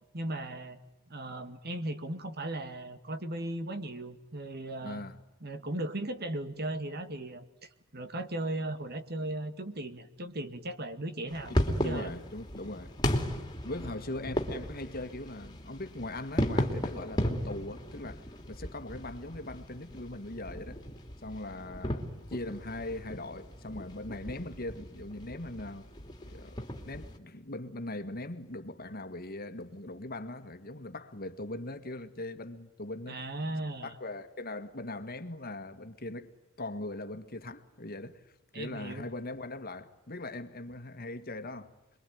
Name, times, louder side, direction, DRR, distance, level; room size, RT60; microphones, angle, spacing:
voice 1, 0.1-0.8 1.1-5.0 5.4-12.1 33.1-34.0 38.5-39.1, right 1 dB, 50° right, 2.2 m, -37 dB
voice 2, 4.8-5.2 11.5-12.9 13.6-18.2 18.5-20.8 21.2-25.9 26.2-33.2 33.8-36.3 36.6-38.2 38.5-41.7, left 2 dB, 45° left, 1.9 m, -40 dB
sound 1, 11.3-27.2, equal, 20° left, 3.0 m, -36 dB
27.5 x 23.0 x 9.4 m
head